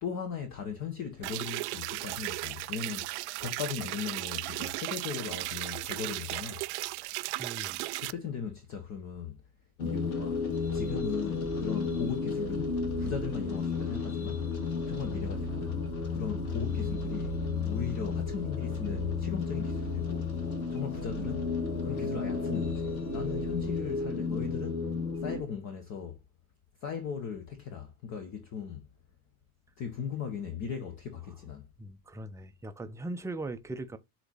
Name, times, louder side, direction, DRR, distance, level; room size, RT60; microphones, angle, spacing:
voice 1, 0.0-6.6 8.0-9.4 9.8-10.4 10.7-14.5 14.9-15.8 16.1-20.3 20.7-21.5 21.8-24.9 25.2-26.2 26.8-28.9 29.8-31.7, left 7 dB, 40° left, 1.3 m, -38 dB
sound 1, 1.2-8.1, right 21 dB, 55° right, 0.4 m, -36 dB
voice 2, 7.4-7.8 31.8-34.0, right 2 dB, 5° right, 0.7 m, -39 dB
sound 2, 9.8-25.4, left 4 dB, 75° left, 1.7 m, -32 dB
7.8 x 3.0 x 4.0 m
figure-of-eight pair, 80°, 43 cm